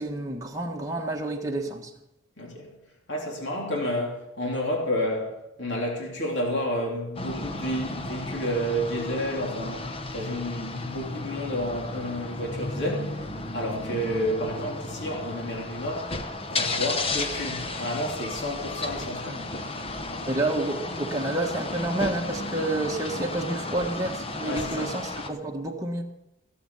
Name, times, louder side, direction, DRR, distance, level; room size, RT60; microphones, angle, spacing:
voice 1, 0.0-1.9 19.2-19.5 20.3-26.0, right 2 dB, 15° right, 1.5 m, -29 dB
voice 2, 2.4-2.7 3.1-13.2 13.5-16.1 16.5-19.4 24.5-24.9, equal, 55° left, 3.4 m, -30 dB
sound 1, 7.2-25.3, left 2 dB, 25° left, 0.9 m, -34 dB
17.0 x 7.9 x 7.2 m
head